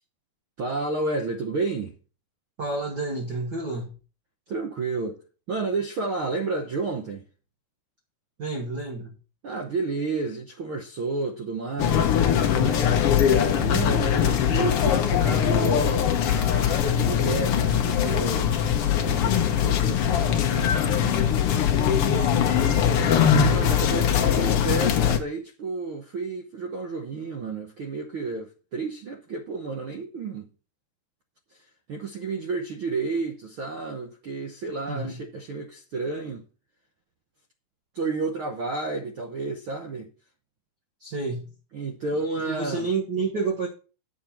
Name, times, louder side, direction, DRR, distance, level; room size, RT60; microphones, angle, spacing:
voice 1, 0.6-2.0 4.5-5.2 5.5-7.2 9.4-12.1 12.5-21.5 23.4-30.5 31.9-36.4 37.9-40.1 41.7-42.9, right 3 dB, 75° right, 1.2 m, -31 dB
voice 2, 2.6-3.9 8.4-9.2 22.0-23.2 34.9-35.2 41.0-41.5 42.2-43.7, right 3 dB, 50° right, 1.3 m, -30 dB
sound 1, 11.8-25.2, left 9 dB, 70° left, 1.4 m, -22 dB
9.3 x 7.5 x 4.4 m
omnidirectional pair, 3.8 m